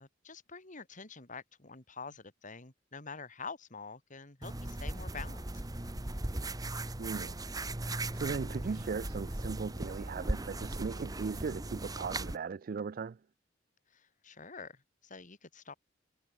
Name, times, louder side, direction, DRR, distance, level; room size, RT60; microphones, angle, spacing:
voice 1, 0.0-5.4 13.9-15.7, left 4 dB, 45° left, 2.7 m, -47 dB
sound 1, 4.4-12.4, right 2 dB, 20° right, 1.2 m, -38 dB
voice 2, 7.0-7.4 7.8-13.2, right 5 dB, 50° right, 0.4 m, -38 dB
head